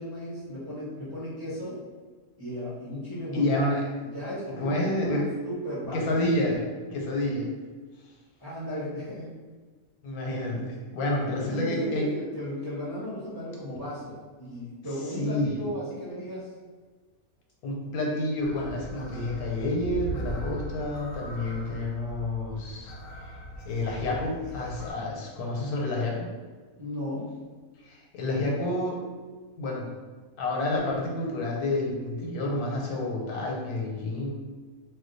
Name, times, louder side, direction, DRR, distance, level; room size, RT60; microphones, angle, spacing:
voice 1, 0.0-1.8 2.4-3.5 4.0-6.6 8.4-9.3 11.3-16.5 26.8-27.3, equal, 25° right, -10 dB, 0.6 m, -36 dB
voice 2, 3.3-3.8 4.6-5.3 5.9-6.6 6.9-7.5 10.0-12.1 15.2-15.6 17.6-22.9 23.2-23.3 23.6-26.3 27.9-29.0 29.6-29.9 30.4-34.3, left 1 dB, 90° left, -2 dB, 1.2 m, -29 dB
sound 1, 18.4-24.9, equal, 70° left, 1.0 m, -39 dB
2.6 x 2.3 x 3.8 m, 1.4 s
omnidirectional pair, 1.5 m